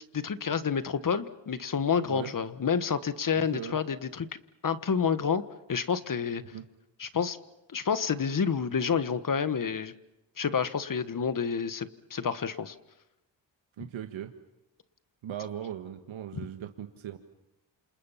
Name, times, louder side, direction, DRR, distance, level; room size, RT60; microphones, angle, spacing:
voice 1, 0.1-4.3 4.6-5.4 5.7-6.4 7.0-7.4 7.7-9.9 10.4-12.7 16.3-16.5, left 6 dB, 40° left, 12 dB, 1.5 m, -29 dB
voice 2, 3.4-3.8 6.5-6.6 13.8-14.3 15.2-17.2, right 10 dB, 75° right, 6 dB, 1.6 m, -38 dB
28.5 x 27.5 x 5.8 m, 0.95 s
cardioid pair, 80°, 47 cm